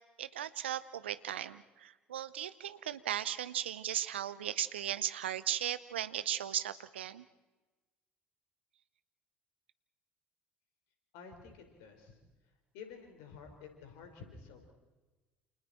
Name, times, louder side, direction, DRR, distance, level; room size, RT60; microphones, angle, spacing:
voice 1, 0.2-7.2, right 11 dB, 85° right, 15 dB, 0.8 m, -37 dB
voice 2, 11.1-12.2 12.7-14.7, left 5 dB, 70° left, 5 dB, 5.2 m, -51 dB
29.0 x 28.5 x 4.5 m, 1.2 s
hypercardioid pair, 60°, 6 cm